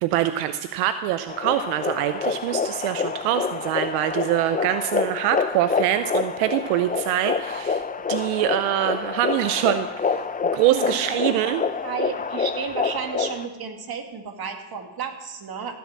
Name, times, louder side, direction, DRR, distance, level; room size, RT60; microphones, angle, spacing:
voice 1, 0.0-7.8 8.1-10.2 10.5-11.6, right 12 dB, 85° right, 11 dB, 0.7 m, -24 dB
sound 1, 1.3-13.5, left 5 dB, 15° left, 0.6 m, -27 dB
voice 2, 10.7-11.5 11.8-15.7, right 6 dB, 45° right, 5 dB, 2.2 m, -33 dB
15.0 x 6.9 x 7.4 m, 1.1 s
supercardioid pair, 80°, 50 cm